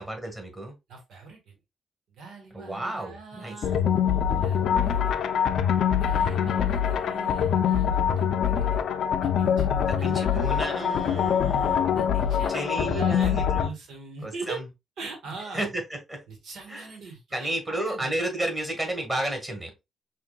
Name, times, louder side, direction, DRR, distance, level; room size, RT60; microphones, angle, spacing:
voice 1, 0.0-0.8 2.5-3.6 10.0-11.9 12.5-13.4 14.2-14.6 15.5-16.2 16.7-16.9 17.3-19.7, right 1 dB, 20° right, 1.7 m, -32 dB
voice 2, 0.9-1.6 2.2-5.2 5.9-8.8 9.2-11.2 11.9-14.6 15.0-15.7 16.3-18.1, right 4 dB, 85° right, 1.6 m, -42 dB
sound 1, 3.6-13.7, left 8 dB, 75° left, 0.5 m, -24 dB
5.8 x 2.7 x 2.4 m
cardioid pair, 115°, 0 cm